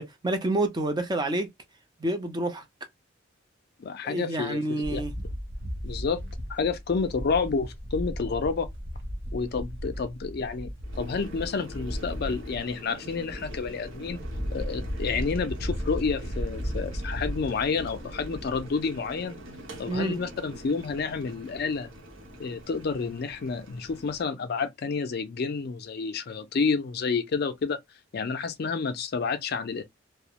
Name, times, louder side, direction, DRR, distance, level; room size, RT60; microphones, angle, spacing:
voice 1, 0.0-1.5 2.0-2.6 4.0-5.1 19.9-20.2, right 2 dB, 20° right, 0.4 m, -28 dB
voice 2, 3.8-5.0 5.8-6.2 6.5-8.7 9.3-14.2 14.5-19.4 19.8-21.9 22.4-27.8 28.1-29.8, left 5 dB, 55° left, 0.4 m, -29 dB
sound 1, 4.8-18.6, equal, 60° right, 0.7 m, -35 dB
Boiling, 10.8-24.3, equal, 85° right, 1.0 m, -45 dB
2.3 x 2.0 x 2.9 m
head